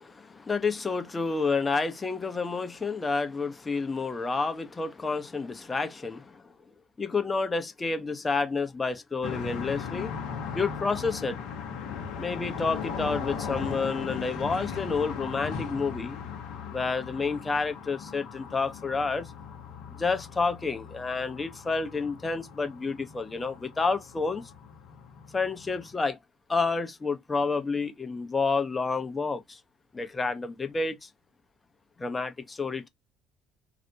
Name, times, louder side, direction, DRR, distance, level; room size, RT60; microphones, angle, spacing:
voice 1, 0.0-6.4 7.0-10.1 10.5-11.4 12.2-16.2 16.7-19.3 20.0-24.4 25.3-26.2 26.5-29.6 29.9-31.1 32.0-32.9, left 4 dB, 25° left, 0.6 m, -29 dB
sound 1, 9.2-25.9, left 7 dB, 60° left, 0.7 m, -38 dB
2.5 x 2.1 x 2.7 m
figure-of-eight pair, 55°, 0 cm